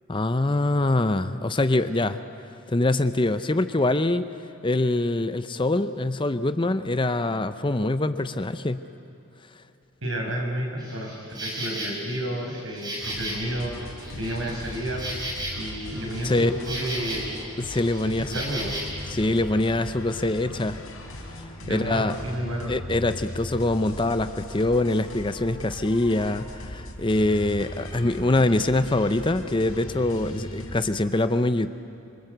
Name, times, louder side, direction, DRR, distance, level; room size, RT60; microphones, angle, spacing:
voice 1, 0.1-2.2 2.7-4.3 4.6-8.8 16.2-16.5 17.6-18.3 19.1-20.8 21.4-22.2 22.7-31.7, left 2 dB, 25° left, 11 dB, 0.6 m, -24 dB
voice 2, 10.0-15.1 15.5-17.4 18.0-18.7 21.6-22.7, right 1 dB, 70° right, 0 dB, 5.9 m, -31 dB
Insect, 10.8-18.8, right 1 dB, 20° right, 5.3 m, -36 dB
sound 1, 13.0-30.8, left 1 dB, 85° left, 4.4 m, -39 dB
27.0 x 24.5 x 8.0 m, 3.0 s
head